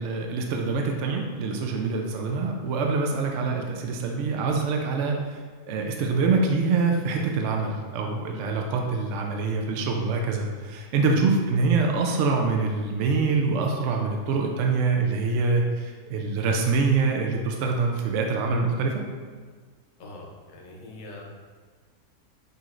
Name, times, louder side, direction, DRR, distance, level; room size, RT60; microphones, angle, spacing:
voice 1, 0.0-5.2 5.7-19.0, right 4 dB, 65° right, 2 dB, 0.8 m, -25 dB
voice 2, 20.0-21.2, left 2 dB, 45° left, -2 dB, 0.7 m, -43 dB
6.6 x 3.0 x 2.5 m, 1.5 s
omnidirectional pair, 1.6 m